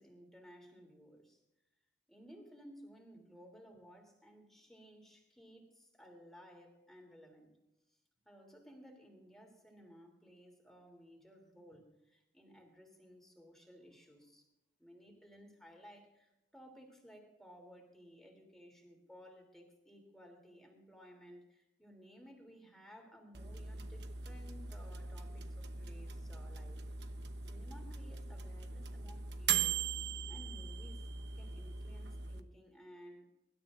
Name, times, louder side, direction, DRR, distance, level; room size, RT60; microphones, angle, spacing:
voice 1, 0.0-1.4 2.1-7.5 7.9-8.0 8.2-14.5 14.8-27.2 27.5-31.1 31.3-33.3, equal, ahead, 1 dB, 3.1 m, -58 dB
sound 1, 23.3-32.4, right 6 dB, 70° right, 1.0 m, -40 dB
24.0 x 12.5 x 2.6 m, 0.93 s
head